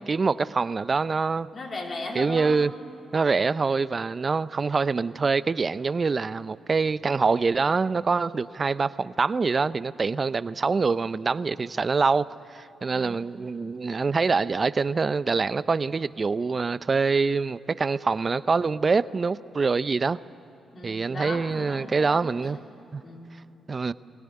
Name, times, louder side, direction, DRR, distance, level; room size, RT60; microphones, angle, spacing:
voice 1, 0.0-1.5 2.1-2.7 3.1-12.3 12.5-20.2 20.8-22.6 22.9-23.0 23.7-23.9, right 4 dB, 40° right, 16 dB, 0.6 m, -25 dB
voice 2, 1.5-2.6 12.9-13.3 20.7-22.6 23.0-23.4, left 2 dB, 50° left, 0 dB, 3.8 m, -37 dB
22.0 x 17.0 x 9.8 m, 3.0 s
supercardioid pair, 60°, 0 cm